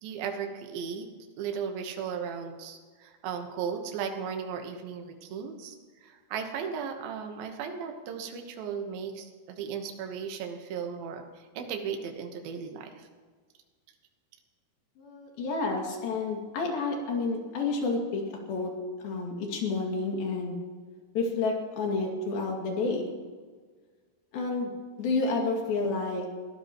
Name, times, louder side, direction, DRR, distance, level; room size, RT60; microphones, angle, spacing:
voice 1, 0.0-1.1 1.4-5.8 6.0-13.1, right 7 dB, 75° right, 4 dB, 2.9 m, -36 dB
voice 2, 15.0-18.7 19.0-20.6 21.2-23.1 24.3-26.3, left 3 dB, 70° left, 0 dB, 4.1 m, -30 dB
22.5 x 15.5 x 3.0 m, 1.5 s
omnidirectional pair, 4.5 m